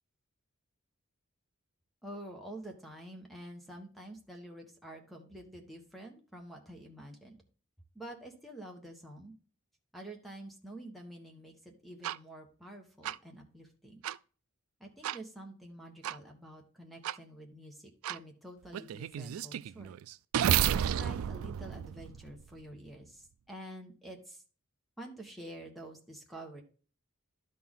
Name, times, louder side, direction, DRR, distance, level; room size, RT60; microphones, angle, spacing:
voice 1, 2.0-7.4 7.9-9.3 9.9-14.0 14.8-19.9 20.7-24.4 25.0-26.6, right 1 dB, ahead, 2 dB, 1.4 m, -48 dB
sound 1, 12.0-12.2 13.0-13.1 14.0-14.2 15.0-15.2 16.0-16.2 17.0-17.2 18.0-18.2 18.7-22.6, right 10 dB, 85° right, 0.3 m, -32 dB
12.0 x 4.3 x 3.7 m, 0.39 s
head